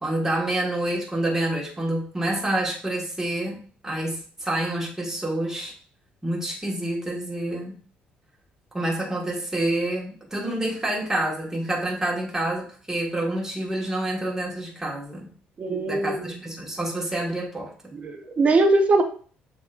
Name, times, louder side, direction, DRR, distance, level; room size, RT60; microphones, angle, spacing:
voice 1, 0.0-5.7 6.2-7.8 8.7-15.3 15.9-17.7, right 1 dB, 10° right, -3 dB, 1.6 m, -28 dB
voice 2, 15.6-16.3 18.0-19.0, right 2 dB, 40° right, 6 dB, 0.9 m, -21 dB
7.1 x 2.9 x 2.5 m, 0.43 s
supercardioid pair, 85°, 4 cm